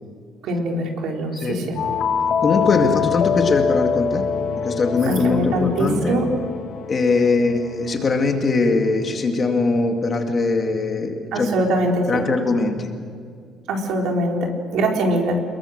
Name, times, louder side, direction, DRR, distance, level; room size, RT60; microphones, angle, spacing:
voice 1, 0.4-1.8 5.1-6.3 11.3-12.3 13.7-15.4, right 1 dB, 65° right, 1 dB, 4.3 m, -22 dB
sound 1, 1.8-8.2, left 7 dB, 45° left, 1.3 m, -25 dB
voice 2, 2.4-4.2 4.6-6.2 6.9-11.5 12.1-12.9, left 3 dB, 25° left, 3 dB, 2.2 m, -21 dB
28.5 x 22.0 x 6.6 m, 2.2 s
cardioid pair, 175°, 0 cm